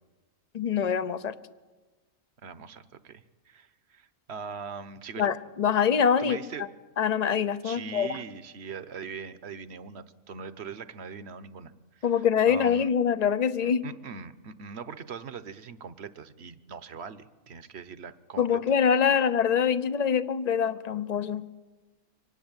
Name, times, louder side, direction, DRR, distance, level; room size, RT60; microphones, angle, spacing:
voice 1, 0.5-1.3 5.2-6.4 7.0-8.2 12.0-13.8 18.4-21.4, left 7 dB, 35° left, 14 dB, 0.8 m, -24 dB
voice 2, 2.4-5.3 6.2-6.7 7.6-12.9 13.6-18.6 19.0-19.1, right 6 dB, 55° right, 14 dB, 1.2 m, -41 dB
25.0 x 18.5 x 9.0 m, 1.3 s
omnidirectional pair, 1.4 m